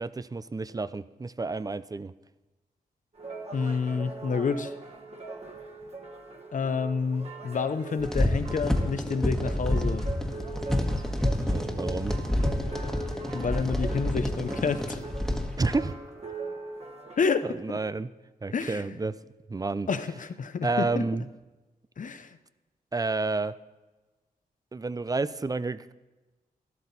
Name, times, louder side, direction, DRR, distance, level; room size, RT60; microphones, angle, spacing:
voice 1, 0.0-2.1 11.4-12.2 15.6-15.9 17.4-18.1 18.4-19.2 19.5-19.9 20.6-21.3 22.9-23.5 24.7-25.9, right 3 dB, 25° right, 16 dB, 0.5 m, -30 dB
sound 1, 3.1-17.3, right 3 dB, 40° right, 1.6 m, -41 dB
voice 2, 3.5-4.7 6.5-10.0 13.3-15.0 17.2-17.6 18.5-19.0 19.9-21.0 22.0-22.4, left 5 dB, 55° left, 11 dB, 0.8 m, -29 dB
sound 2, 8.0-15.8, left 1 dB, 5° left, 1.5 m, -28 dB
12.5 x 12.0 x 4.1 m, 1.2 s
cardioid pair, 70°, 16 cm